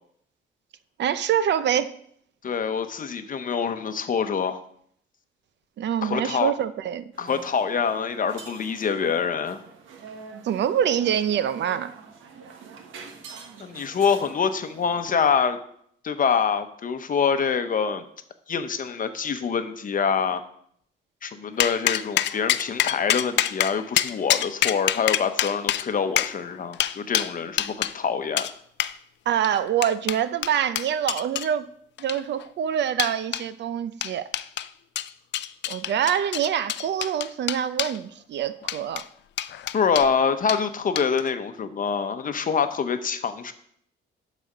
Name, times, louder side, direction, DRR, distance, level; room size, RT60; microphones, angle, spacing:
voice 1, 1.0-1.9 5.8-7.1 10.4-11.9 29.3-31.6 32.0-34.3 35.7-39.0, right 9 dB, 60° right, 14 dB, 0.5 m, -25 dB
voice 2, 2.4-4.6 6.0-6.5 7.2-9.6 13.6-15.6 16.0-18.0 18.5-20.4 21.2-28.5 39.7-43.5, left 6 dB, 45° left, 9 dB, 0.9 m, -25 dB
sound 1, 7.1-15.0, right 5 dB, 80° right, 1.2 m, -45 dB
sound 2, 21.6-27.9 28.4-28.5 28.8-28.9 29.4-31.5 32.0-32.4 33.0-33.4 34.0-34.7 35.0-38.0 38.6-39.0 39.4-40.1 40.5-40.6 41.0-41.3, left 12 dB, 65° left, 0.4 m, -26 dB
12.0 x 4.2 x 5.0 m, 0.67 s
cardioid pair, 90°, 20 cm